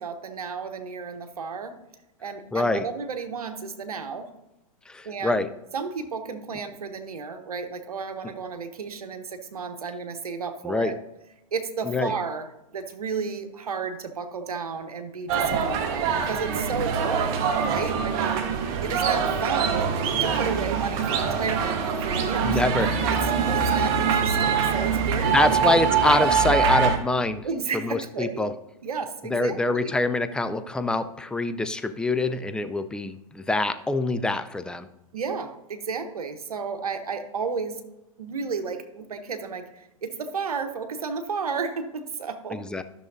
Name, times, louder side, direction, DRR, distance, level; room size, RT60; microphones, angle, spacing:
voice 1, 0.0-1.8 2.2-4.3 5.0-5.4 5.7-11.0 11.5-12.5 12.7-18.5 18.8-19.9 20.2-22.6 23.1-23.2 23.5-26.3 27.4-28.5 28.8-29.9 35.1-37.8 38.2-42.7, right 5 dB, 85° right, 7 dB, 1.0 m, -32 dB
voice 2, 2.5-2.9 4.9-5.5 8.2-8.3 10.6-10.9 11.8-12.1 22.4-23.1 25.3-27.5 27.8-28.5 29.2-34.9 42.5-42.8, left 2 dB, 5° left, 10 dB, 0.3 m, -25 dB
sound 1, 15.3-27.0, right 6 dB, 45° right, 1.1 m, -24 dB
13.0 x 6.3 x 2.6 m, 0.93 s
hypercardioid pair, 115°, 19 cm